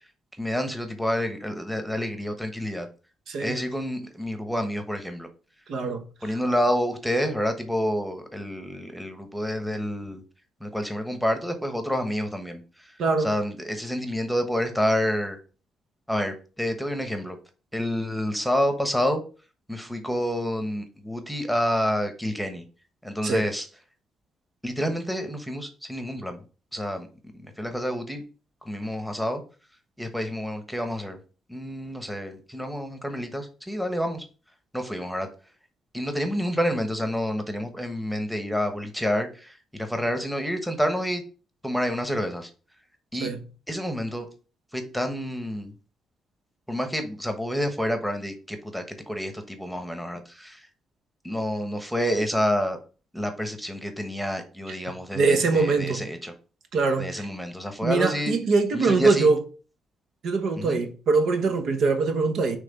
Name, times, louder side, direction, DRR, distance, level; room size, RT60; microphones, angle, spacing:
voice 1, 0.4-2.9 3.4-5.3 6.2-10.2 10.6-15.4 16.1-17.4 17.7-19.2 19.7-22.6 23.0-23.7 24.6-26.4 26.7-27.1 27.3-28.2 28.6-29.4 30.0-31.2 31.5-34.2 34.7-35.3 35.9-41.2 41.6-42.5 43.1-43.3 43.7-44.3 44.7-45.7 46.7-50.7 51.2-52.8 53.1-56.3 57.0-58.3 58.7-59.3 60.5-60.8, equal, ahead, 1.1 m, -28 dB
voice 2, 5.7-6.0 13.0-13.3 23.2-23.4 43.2-43.4 54.7-54.8 55.1-56.0 56.7-57.3 57.8-59.4 60.2-62.6, right 4 dB, 65° right, 1.1 m, -23 dB
5.8 x 3.3 x 5.4 m
cardioid pair, 90°, 0 cm